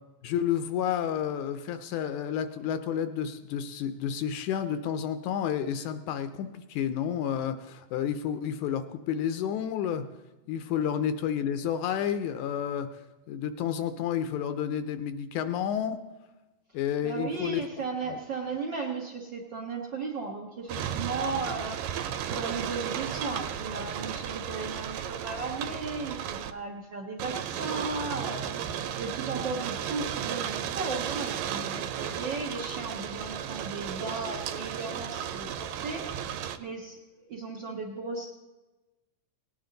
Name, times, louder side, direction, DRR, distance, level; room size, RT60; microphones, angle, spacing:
voice 1, 0.2-10.1 10.5-12.9 13.3-16.0 16.7-17.6, left 9 dB, 75° left, 10 dB, 1.9 m, -30 dB
voice 2, 17.0-28.6 29.0-36.2 36.6-38.3, right 3 dB, 65° right, 0 dB, 1.1 m, -36 dB
sound 1, 20.7-26.5 27.2-36.6, right 9 dB, 90° right, 2.3 m, -34 dB
18.5 x 9.5 x 3.9 m, 1.1 s
omnidirectional pair, 3.8 m